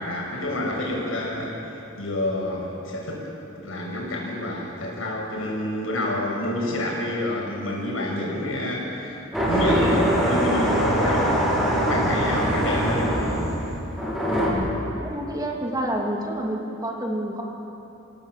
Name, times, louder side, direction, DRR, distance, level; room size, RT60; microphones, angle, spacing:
voice 1, 0.0-3.2 3.6-11.3 11.8-13.1, left 1 dB, 90° left, -2 dB, 6.7 m, -28 dB
sound 1, 9.3-14.5, equal, ahead, 7.1 m, -23 dB
voice 2, 14.3-17.4, right 1 dB, 20° right, -1 dB, 2.8 m, -29 dB
28.5 x 17.5 x 7.7 m, 3.0 s
head